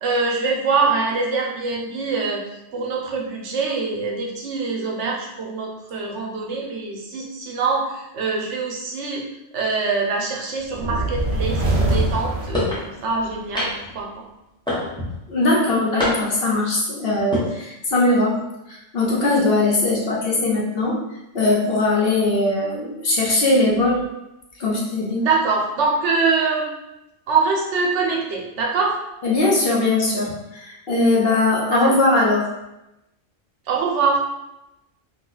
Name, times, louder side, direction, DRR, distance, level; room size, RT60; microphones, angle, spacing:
voice 1, 0.0-2.4 2.7-9.2 9.5-13.7 13.9-14.2 25.2-26.7 27.3-29.0 31.8-32.0 33.7-34.2, right 4 dB, 70° right, -1 dB, 1.0 m, -24 dB
sound 1, 10.7-13.4, right 1 dB, 50° right, 0.4 m, -23 dB
sound 2, 12.5-12.8 13.6-14.0 14.7-15.2 16.0-16.5 17.2-17.5, left 1 dB, 5° left, 0.7 m, -24 dB
voice 2, 15.3-18.4 18.7-21.0 21.3-24.0 24.6-25.3 29.2-32.4, left 2 dB, 55° left, -4 dB, 1.0 m, -20 dB
3.1 x 2.2 x 3.9 m, 0.90 s
omnidirectional pair, 1.3 m